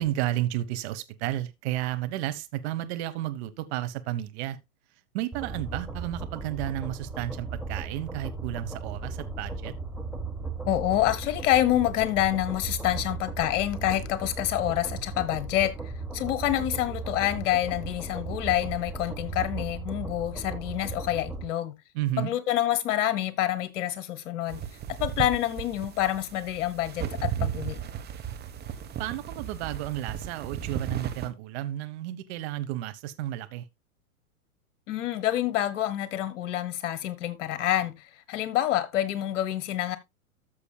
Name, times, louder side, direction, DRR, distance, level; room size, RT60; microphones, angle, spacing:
voice 1, 0.0-4.6 5.1-9.7 21.9-22.3 29.0-33.6, right 14 dB, 45° right, 1.2 m, -32 dB
sound 1, 5.3-21.5, right 3 dB, ahead, 1.3 m, -36 dB
voice 2, 10.7-21.7 22.2-24.6 24.9-27.8 34.9-40.0, left 13 dB, 55° left, 1.5 m, -27 dB
sound 2, 24.5-31.3, right 9 dB, 20° right, 1.2 m, -35 dB
13.5 x 6.9 x 2.3 m
hypercardioid pair, 105°, 44 cm